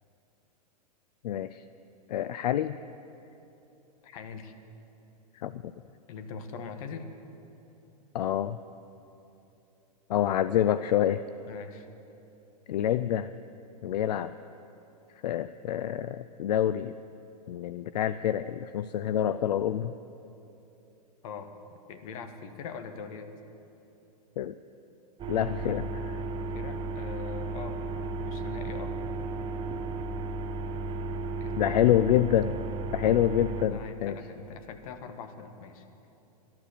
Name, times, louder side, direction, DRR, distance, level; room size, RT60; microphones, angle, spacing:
voice 1, 1.2-1.6 2.1-2.8 5.3-5.7 8.1-8.6 10.1-11.2 12.7-13.3 13.8-14.3 15.2-16.9 17.5-19.9 24.4-24.5 25.3-26.2 31.6-32.6 32.9-34.2, left 11 dB, 75° left, 14 dB, 0.4 m, -27 dB
voice 2, 4.0-4.5 6.1-7.1 11.5-11.8 21.2-21.5 21.9-23.3 26.5-29.0 31.4-32.0 33.7-35.8, left 5 dB, 60° left, 8 dB, 1.2 m, -42 dB
sound 1, 25.2-33.7, right 3 dB, 25° right, 1.0 m, -34 dB
12.0 x 12.0 x 6.7 m, 2.9 s
hypercardioid pair, 120°, 21 cm